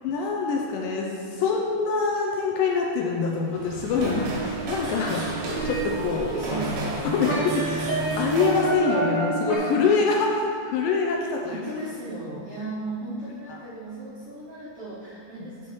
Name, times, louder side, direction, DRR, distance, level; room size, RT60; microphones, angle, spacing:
voice 1, 0.0-5.2 5.6-6.3 7.0-11.6 13.5-13.6, left 4 dB, 80° left, 0 dB, 2.1 m, -25 dB
sound 1, 3.5-8.8, right 2 dB, 80° right, 2.8 m, -33 dB
sound 2, 4.0-9.6, right 2 dB, 45° left, 1.8 m, -30 dB
voice 2, 6.2-7.3 11.5-15.7, right 2 dB, 55° right, -10 dB, 1.8 m, -36 dB
10.5 x 4.7 x 3.1 m, 2.3 s
omnidirectional pair, 4.2 m